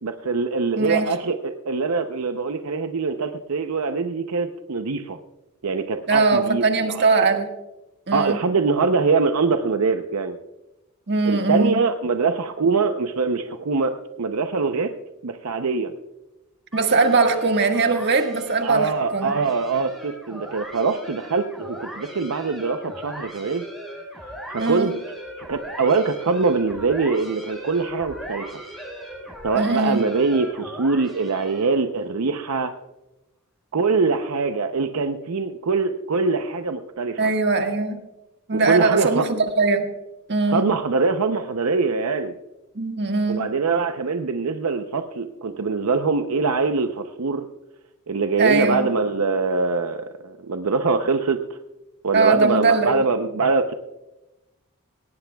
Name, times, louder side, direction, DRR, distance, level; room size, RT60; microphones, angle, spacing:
voice 1, 0.0-5.2 5.6-7.0 8.1-10.4 11.3-14.9 15.2-15.9 18.6-23.7 24.2-24.9 25.5-28.5 29.4-32.7 33.7-37.3 38.5-39.3 40.5-42.3 43.3-47.4 48.1-51.6 52.0-53.7, right 4 dB, 75° right, 7 dB, 0.7 m, -23 dB
voice 2, 6.1-7.5 8.1-8.4 11.1-11.8 16.7-19.4 24.6-24.9 29.5-30.1 37.2-38.0 38.5-39.9 40.3-40.7 42.7-43.5 48.4-48.9 52.1-52.9, right 3 dB, 50° right, 4 dB, 1.6 m, -20 dB
sound 1, 16.7-31.9, equal, ahead, 4.2 m, -39 dB
18.5 x 17.5 x 2.3 m, 1.0 s
head